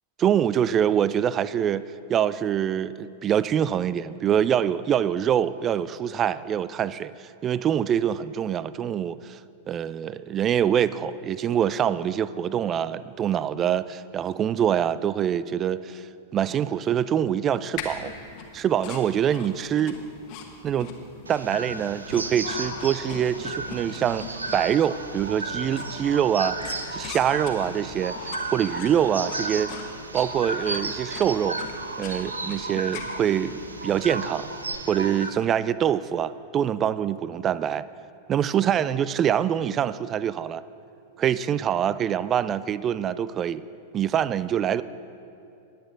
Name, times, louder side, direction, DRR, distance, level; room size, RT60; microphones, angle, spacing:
voice 1, 0.2-9.4 9.7-16.1 16.3-18.1 18.5-20.0 20.6-20.9 21.3-24.3 24.5-26.6 26.9-29.7 30.1-31.6 32.0-34.5 34.9-37.9 38.3-40.6 41.2-43.6 43.9-44.8, right 9 dB, 25° right, 17 dB, 0.3 m, -25 dB
sound 1, 17.8-34.8, left 6 dB, 40° left, 1.3 m, -43 dB
sound 2, 21.3-35.3, right 3 dB, 80° right, 0.8 m, -34 dB
sound 3, 22.4-31.5, left 6 dB, 60° left, 0.8 m, -44 dB
20.0 x 8.2 x 3.7 m, 2.6 s
figure-of-eight pair, 95°, 0 cm